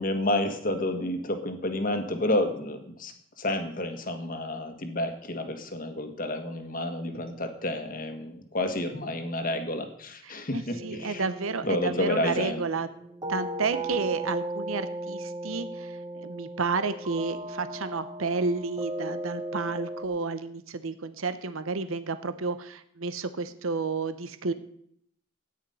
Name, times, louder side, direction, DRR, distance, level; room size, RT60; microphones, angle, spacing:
voice 1, 0.0-11.2 11.6-12.6, left 1 dB, 40° left, 6 dB, 1.6 m, -30 dB
voice 2, 10.2-12.9 13.3-15.9 16.2-24.5, right 4 dB, 80° right, 12 dB, 0.9 m, -31 dB
sound 1, 10.7-20.1, right 2 dB, 20° right, 0.9 m, -37 dB
13.0 x 9.5 x 5.6 m, 0.69 s
head